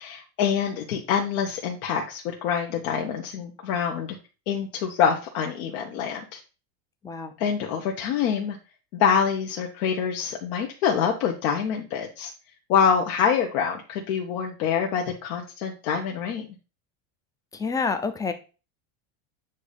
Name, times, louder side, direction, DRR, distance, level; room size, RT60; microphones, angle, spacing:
voice 1, 0.0-4.1 4.5-6.4 7.4-8.6 8.9-12.3 12.7-16.5, left 7 dB, 75° left, 1 dB, 1.2 m, -25 dB
voice 2, 17.5-18.3, left 4 dB, 10° left, 8 dB, 0.4 m, -28 dB
8.3 x 2.8 x 5.0 m, 0.33 s
supercardioid pair, 145°, 43 cm